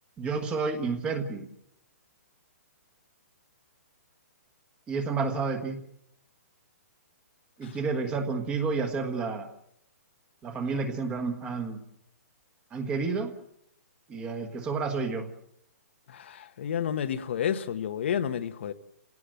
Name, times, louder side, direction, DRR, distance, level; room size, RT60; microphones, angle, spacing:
voice 1, 0.2-1.5 4.9-5.8 7.6-9.5 10.4-11.8 12.7-13.3 14.1-15.3, right 4 dB, 10° right, 1.4 m, -30 dB
voice 2, 16.1-18.7, left 8 dB, 45° left, 1.0 m, -30 dB
28.5 x 17.0 x 7.7 m
hypercardioid pair, 170°, 8 cm